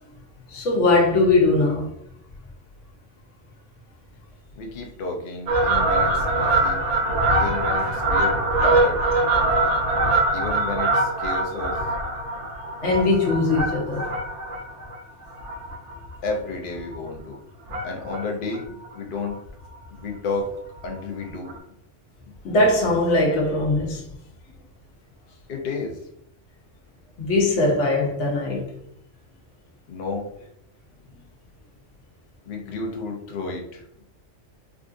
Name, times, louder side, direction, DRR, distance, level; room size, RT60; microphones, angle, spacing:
voice 1, 0.5-1.9 12.8-14.1 22.4-24.0 27.2-28.7, left 2 dB, 75° left, 1.1 m, -20 dB
voice 2, 4.6-6.8 7.3-9.0 10.3-11.8 16.2-17.4 17.8-19.4 19.9-20.5 20.8-21.5 25.5-26.0 29.9-30.3 32.5-33.8, left 3 dB, 55° left, 0.7 m, -31 dB
Fowl, 5.5-16.3 16.7-16.9 17.7-18.2 18.5-18.6 18.9-19.0 19.3-19.4 19.7-19.8 20.8-20.9 21.5-21.6, right 2 dB, 75° right, 1.0 m, -23 dB
3.6 x 2.5 x 2.4 m
omnidirectional pair, 1.2 m